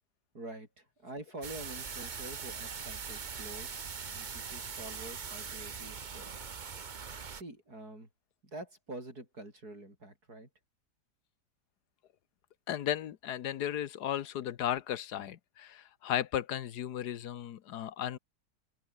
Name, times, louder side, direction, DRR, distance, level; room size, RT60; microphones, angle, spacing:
voice 1, 0.3-6.5 7.3-8.1 8.4-10.5, right 2 dB, 65° right, 8.4 m, -47 dB
sound 1, 1.4-7.4, right 6 dB, 35° right, 0.9 m, -41 dB
voice 2, 12.7-18.2, left 11 dB, 75° left, 1.5 m, -35 dB
omnidirectional pair, 1.8 m